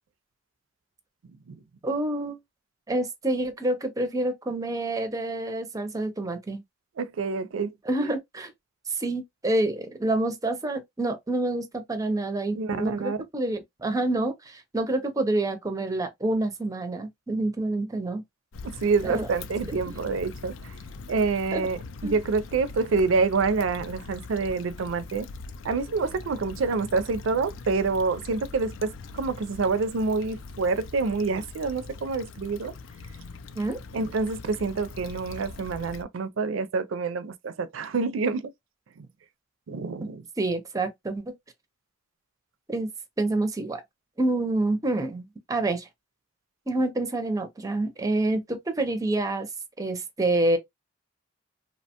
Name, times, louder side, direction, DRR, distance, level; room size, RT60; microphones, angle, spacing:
voice 1, 1.8-2.4 2.9-6.6 7.9-8.5 8.9-18.2 19.0-19.3 21.5-21.7 22.0-22.2 33.6-33.8 40.4-41.3 42.7-42.9 43.2-43.8 44.2-45.9 46.7-49.5 49.8-50.6, right 2 dB, 15° right, 0.5 m, -27 dB
voice 2, 7.0-7.7 8.0-8.1 12.6-13.2 18.6-20.7 21.1-25.3 25.6-32.7 33.9-38.5 39.0-39.1 39.7-40.2, right 4 dB, 70° right, 0.4 m, -27 dB
Stream / Traffic noise roadway noise / Trickle dribble, 18.5-36.0, left 3 dB, 70° left, 0.4 m, -42 dB
2.8 x 2.1 x 2.8 m
head